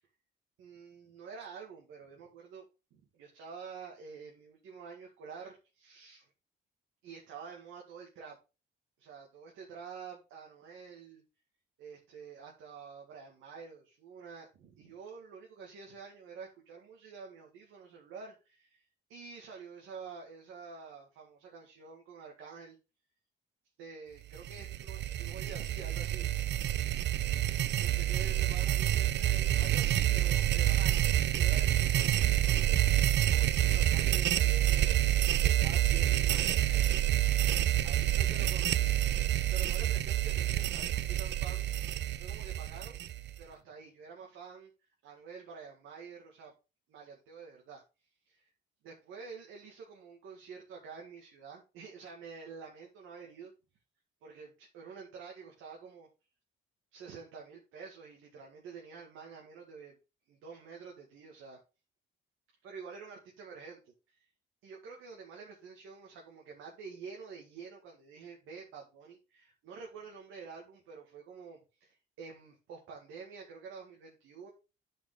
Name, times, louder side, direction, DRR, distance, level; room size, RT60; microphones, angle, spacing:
voice 1, 0.6-2.6 2.9-6.3 7.0-8.4 9.0-11.2 11.8-22.8 23.8-26.3 27.7-32.9 33.3-36.9 37.8-39.2 39.5-41.6 42.2-43.0 43.3-46.5 46.9-47.8 48.3-48.5 48.8-53.5 54.2-56.1 56.9-60.0 60.3-61.6 62.6-64.3 64.6-74.5, right 5 dB, 85° right, -1 dB, 2.1 m, -48 dB
sound 1, 24.4-43.4, right 13 dB, 65° right, 0.6 m, -28 dB
9.7 x 5.4 x 3.9 m, 0.30 s
cardioid pair, 90°, 20 cm